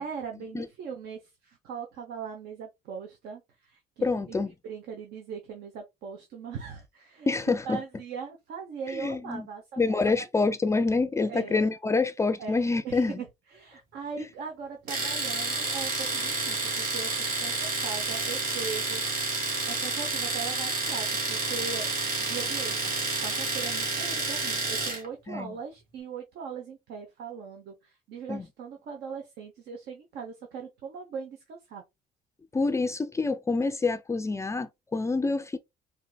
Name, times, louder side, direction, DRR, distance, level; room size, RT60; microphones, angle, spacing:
voice 1, 0.0-4.4 4.6-7.3 7.6-10.2 11.2-11.7 12.4-17.1 17.4-19.0 19.7-21.9 22.2-31.8, right 6 dB, 75° right, 0.8 m, -40 dB
voice 2, 4.0-4.5 7.3-7.8 8.9-9.5 9.8-13.2 14.2-14.3 25.3-25.5 28.3-28.5 32.5-35.6, left 3 dB, 15° left, 0.3 m, -27 dB
Domestic sounds home sounds, 14.9-25.1, right 3 dB, 55° right, 1.9 m, -30 dB
4.4 x 2.6 x 2.2 m
cardioid pair, 110°, 17 cm